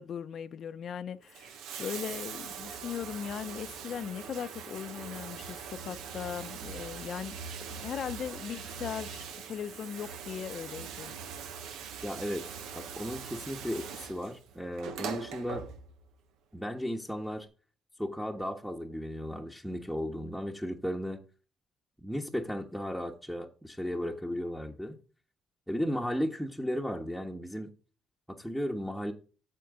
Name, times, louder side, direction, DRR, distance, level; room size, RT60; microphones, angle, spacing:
voice 1, 0.0-7.4 7.8-11.1, left 8 dB, 60° left, 0.6 m, -39 dB
Bathtub (filling or washing), 1.2-16.1 17.2-17.3, right 7 dB, 85° right, 1.1 m, -42 dB
voice 2, 12.0-15.6 16.5-17.5 18.0-21.2 22.0-25.0 25.7-27.7 28.3-29.1, equal, 5° right, 1.2 m, -35 dB
13.5 x 4.6 x 3.8 m
cardioid pair, 85°, 0 cm